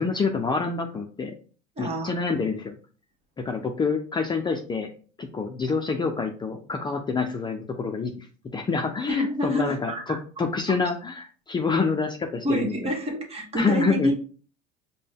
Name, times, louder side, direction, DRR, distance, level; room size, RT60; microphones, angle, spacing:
voice 1, 0.0-1.3 1.8-2.8 3.4-4.9 5.2-8.3 8.5-13.0 13.5-14.1, left 4 dB, 20° left, 4 dB, 0.5 m, -27 dB
voice 2, 1.8-2.1 9.1-10.2 12.4-14.1, equal, 30° right, 1 dB, 1.4 m, -27 dB
5.1 x 2.2 x 3.6 m, 0.40 s
hypercardioid pair, 80°, 21 cm